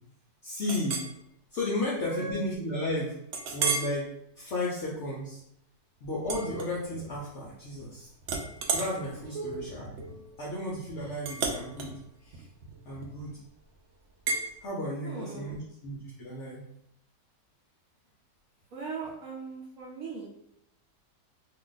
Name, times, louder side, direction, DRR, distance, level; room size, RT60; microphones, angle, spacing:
voice 1, 0.4-1.0 1.5-3.1 3.5-4.1 4.4-5.4 6.0-8.1 8.7-12.5 12.8-13.4 14.6-16.6, left 1 dB, 65° left, -5 dB, 0.7 m, -34 dB
Chink clink, 0.7-1.1 1.7-1.8 2.3-2.4 3.3-4.0 4.5-4.8 6.2-7.2 7.5-7.9 8.2-13.3 14.3-14.5, right 4 dB, 90° right, 0.6 m, -34 dB
voice 2, 2.0-2.4 9.3-9.6 15.0-15.6 18.7-20.3, right 4 dB, 65° right, -2 dB, 0.9 m, -38 dB
2.6 x 2.4 x 3.8 m, 0.75 s
omnidirectional pair, 1.8 m